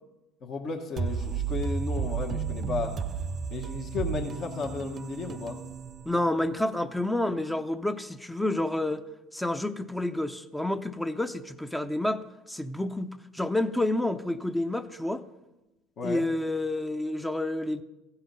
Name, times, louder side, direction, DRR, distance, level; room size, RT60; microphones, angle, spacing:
voice 1, 0.4-3.0 3.5-5.6 16.0-16.2, left 4 dB, 50° left, 1 dB, 1.2 m, -34 dB
sound 1, 1.0-6.6, right 6 dB, 40° right, 0.6 m, -33 dB
voice 2, 6.1-9.0 9.3-15.2 16.0-17.8, left 1 dB, 5° left, 9 dB, 0.6 m, -29 dB
15.0 x 5.7 x 5.3 m, 1.0 s
hypercardioid pair, 75°, 0 cm